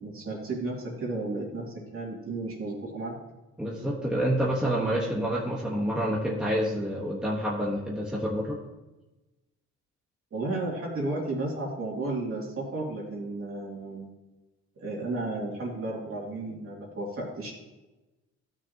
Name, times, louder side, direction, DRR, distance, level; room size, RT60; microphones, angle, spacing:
voice 1, 0.0-1.7 1.9-3.2 10.3-14.1 14.8-17.5, right 2 dB, 45° right, -3 dB, 2.6 m, -33 dB
voice 2, 3.6-8.6, equal, 5° right, -4 dB, 1.3 m, -28 dB
13.0 x 6.2 x 2.9 m, 1.1 s
cardioid pair, 90°, 30 cm